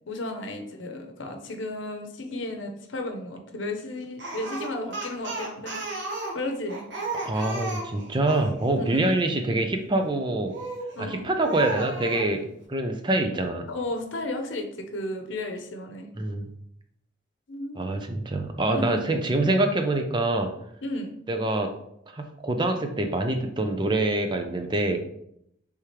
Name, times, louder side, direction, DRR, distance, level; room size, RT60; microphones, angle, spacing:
voice 1, 0.1-5.8 6.3-6.8 8.8-9.1 10.9-11.3 13.7-16.1 17.5-17.9 18.7-19.1 20.8-21.1, left 2 dB, 80° left, 4 dB, 0.8 m, -33 dB
Speech, 4.2-8.5 10.5-10.9 11.4-12.3, right 2 dB, 65° right, 1.3 m, -34 dB
voice 2, 7.2-10.5 11.0-12.4 12.7-13.7 16.2-16.5 17.8-20.5 21.3-21.7 22.1-25.0, right 2 dB, 25° right, 5 dB, 0.4 m, -25 dB
3.5 x 3.3 x 4.4 m, 0.75 s
head